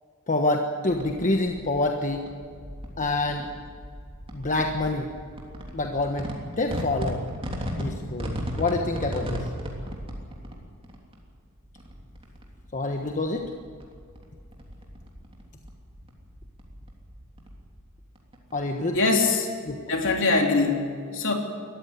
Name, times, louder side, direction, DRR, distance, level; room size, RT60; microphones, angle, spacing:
voice 1, 0.3-2.3 3.0-3.5 4.3-5.1 5.7-6.3 6.6-7.2 7.7-9.4 12.7-13.5 18.5-19.0 19.7-19.8, left 2 dB, 35° left, 3 dB, 1.3 m, -27 dB
sound 1, 0.9-19.0, equal, 25° right, 3.3 m, -37 dB
voice 2, 18.9-19.5 19.9-21.3, left 3 dB, 60° left, 1 dB, 3.4 m, -23 dB
21.5 x 14.5 x 9.4 m, 2.2 s
head